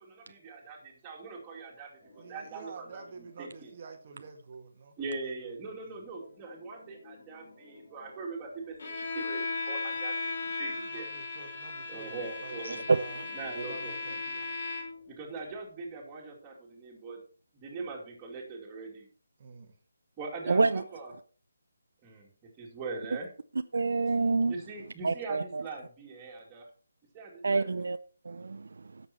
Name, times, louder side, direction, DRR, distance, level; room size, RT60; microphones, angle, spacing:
voice 1, 0.0-3.7 5.0-11.1 11.9-12.8 13.3-14.0 15.1-17.2 17.5-19.1 20.2-21.1 22.0-22.3 22.6-23.3 24.5-26.7 27.1-27.7, right 3 dB, 15° right, 2.5 m, -41 dB
sound 1, 2.0-4.7 6.2-10.5 11.8-16.7 17.0-17.1 17.7-17.8, left 2 dB, 15° left, 3.3 m, -57 dB
voice 2, 2.2-6.1 10.9-14.5 19.4-19.8, right 4 dB, 35° right, 1.3 m, -48 dB
Bowed string instrument, 8.8-15.1, left 3 dB, 40° left, 2.8 m, -36 dB
voice 3, 12.7-13.0 20.5-20.8 23.7-24.5 25.0-25.6 27.4-28.0 28.3-28.7, right 3 dB, 65° right, 0.5 m, -27 dB
11.0 x 7.1 x 4.3 m
hypercardioid pair, 175°, 0 cm